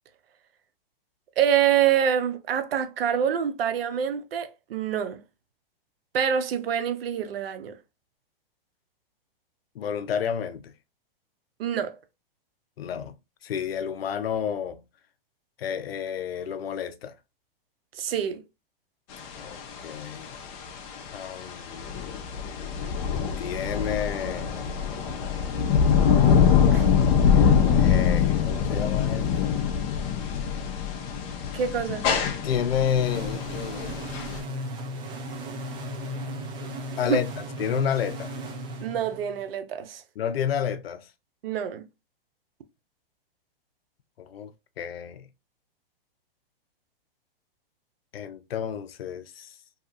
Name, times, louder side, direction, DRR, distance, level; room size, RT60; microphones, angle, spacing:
voice 1, 1.4-5.2 6.1-7.7 11.6-11.9 17.9-18.4 26.7-26.9 31.5-32.1 37.1-37.2 38.8-40.0 41.4-41.8, right 9 dB, 80° right, 0.6 m, -26 dB
voice 2, 9.8-10.7 12.8-13.1 13.4-14.8 15.6-17.1 19.4-20.4 21.1-22.0 23.4-24.8 25.2-25.6 27.6-29.5 32.4-34.2 37.0-37.3 37.6-38.3 40.2-41.1 44.2-45.3 48.1-49.5, left 8 dB, 90° left, 0.5 m, -30 dB
sound 1, 19.1-34.4, left 7 dB, 35° left, 0.6 m, -24 dB
sound 2, 33.0-39.5, equal, 15° right, 0.4 m, -35 dB
2.8 x 2.3 x 2.5 m
hypercardioid pair, 125°, 29 cm